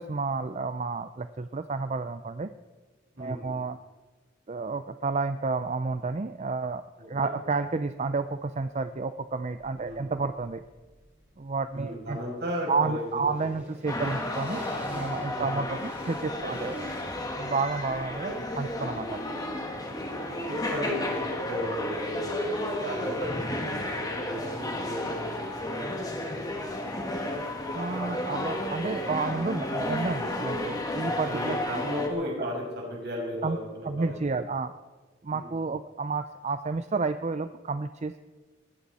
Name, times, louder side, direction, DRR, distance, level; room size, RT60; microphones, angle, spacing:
voice 1, 0.0-2.5 3.2-3.8 4.5-6.8 7.1-10.6 11.4-12.2 12.7-16.8 17.4-19.4 27.7-31.6 33.4-33.6 33.9-34.7 35.2-38.2, right 4 dB, 35° right, 11 dB, 0.5 m, -31 dB
voice 2, 3.1-3.5 7.0-7.3 9.8-10.1 11.7-13.5 15.3-15.6 19.7-19.8 20.5-25.9 31.0-34.4 35.3-35.5, equal, 55° right, -2 dB, 5.9 m, -35 dB
sound 1, 8.1-9.0 9.3-21.5, right 1 dB, 10° right, 5.4 m, -51 dB
sound 2, 13.9-32.1, left 1 dB, 20° left, 1.9 m, -32 dB
20.0 x 14.5 x 4.2 m, 1.3 s
head